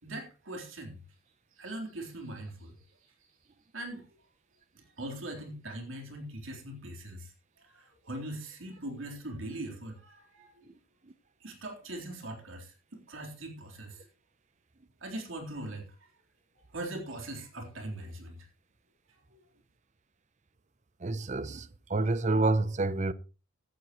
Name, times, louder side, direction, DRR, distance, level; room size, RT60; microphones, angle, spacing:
voice 1, 0.0-1.0 1.6-2.7 3.7-4.1 4.8-7.3 7.6-10.7 11.4-14.1 15.0-16.1 16.7-18.5 19.1-19.4, right 1 dB, 75° right, 3.8 m, -41 dB
voice 2, 21.0-23.1, right 2 dB, 35° right, 0.7 m, -28 dB
16.5 x 12.0 x 3.1 m
head